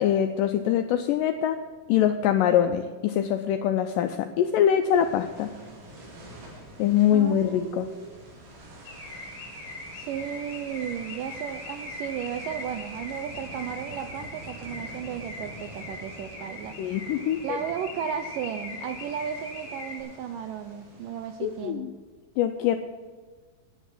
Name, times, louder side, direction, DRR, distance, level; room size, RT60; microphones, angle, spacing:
voice 1, 0.0-1.6 1.9-5.5 6.8-7.9 16.8-17.4 21.4-21.9 22.4-22.8, left 10 dB, 85° left, 7 dB, 1.9 m, -23 dB
sound 1, 4.9-21.7, right 1 dB, 70° right, 4.2 m, -46 dB
voice 2, 7.1-8.2 9.9-16.7 17.4-21.9, right 8 dB, 85° right, 8 dB, 1.9 m, -34 dB
Car / Alarm, 8.9-20.0, left 2 dB, 40° left, 3.0 m, -41 dB
10.0 x 8.2 x 7.3 m, 1.5 s
omnidirectional pair, 4.4 m